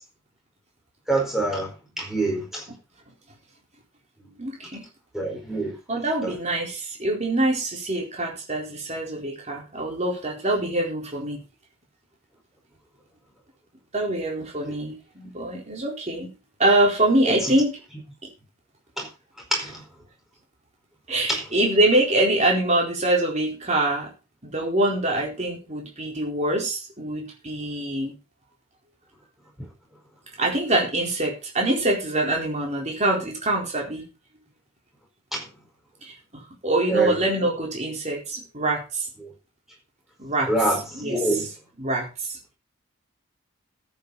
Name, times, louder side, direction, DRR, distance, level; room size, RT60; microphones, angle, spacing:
voice 1, 1.1-1.7 2.0-2.6 5.1-5.8 6.2-6.4 17.3-17.5 19.0-19.1 19.5-19.8 21.3-21.4 35.3-35.4 36.9-37.1 40.5-41.5, right 2 dB, ahead, 4.8 m, -25 dB
voice 2, 4.4-4.9 5.9-11.4 13.9-16.3 16.6-17.8 21.1-24.1 24.4-28.1 30.4-34.0 36.0-39.1 40.2-40.5 40.9-41.2 41.8-42.3, right 1 dB, 30° right, 4.2 m, -24 dB
14.0 x 8.6 x 4.1 m
head